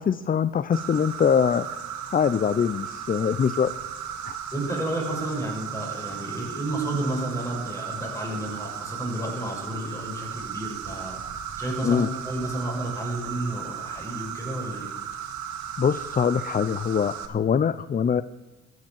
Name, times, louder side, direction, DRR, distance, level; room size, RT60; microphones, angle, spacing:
voice 1, 0.0-1.8 2.1-3.7 4.2-4.4 11.8-12.1 15.8-18.2, left 7 dB, 30° left, 15 dB, 0.5 m, -23 dB
Insect, 0.7-17.3, right 8 dB, 70° right, 1.7 m, -35 dB
voice 2, 4.5-14.9, right 1 dB, 10° left, 0 dB, 6.6 m, -31 dB
14.0 x 9.4 x 7.5 m, 1.1 s
supercardioid pair, 70°, 30 cm